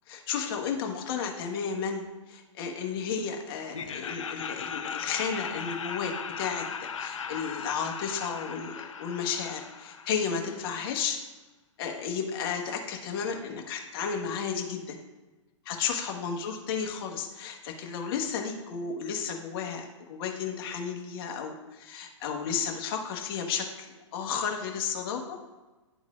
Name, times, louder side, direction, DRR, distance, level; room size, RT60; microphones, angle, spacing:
voice 1, 0.3-11.2 11.8-15.0 15.6-23.9 24.1-25.4, left 6 dB, 50° left, 2 dB, 1.3 m, -33 dB
Laughter, 3.7-10.7, left 6 dB, 80° left, 0.6 m, -38 dB
11.0 x 3.9 x 2.4 m, 1.2 s
hypercardioid pair, 125°, 16 cm